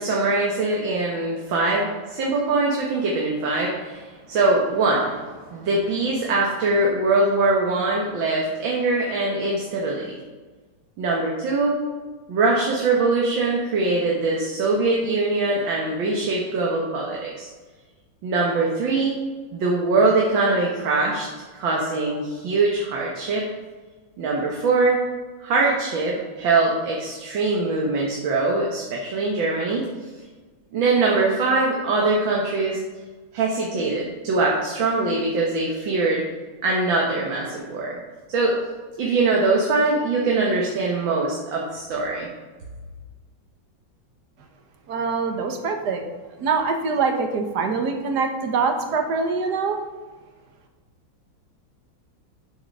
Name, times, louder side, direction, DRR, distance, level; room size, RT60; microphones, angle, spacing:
voice 1, 0.0-10.1 11.0-11.8 12.3-17.5 18.2-19.2 19.5-21.3 21.5-23.5 24.2-25.0 25.4-29.9 30.7-32.8 33.3-36.2 36.6-38.0 38.3-38.6 39.0-42.3, right 3 dB, 75° right, -2 dB, 2.0 m, -22 dB
voice 2, 44.9-46.0 46.4-49.8, right 4 dB, 60° right, 4 dB, 1.6 m, -24 dB
7.9 x 7.2 x 5.4 m, 1.3 s
omnidirectional pair, 2.2 m